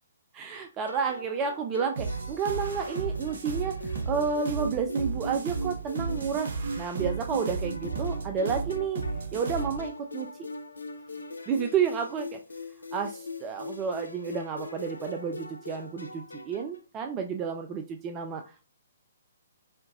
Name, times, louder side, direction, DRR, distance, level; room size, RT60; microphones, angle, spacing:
voice 1, 0.3-6.5 6.8-9.0 9.3-10.3 11.5-12.4 12.9-18.6, right 6 dB, 20° right, 5 dB, 0.3 m, -31 dB
sound 1, 0.9-16.8, equal, 75° left, 0.6 m, -39 dB
sound 2, 2.0-9.9, right 4 dB, 55° right, 0.6 m, -34 dB
4.3 x 2.8 x 2.5 m, 0.33 s
figure-of-eight pair, 125°, 0 cm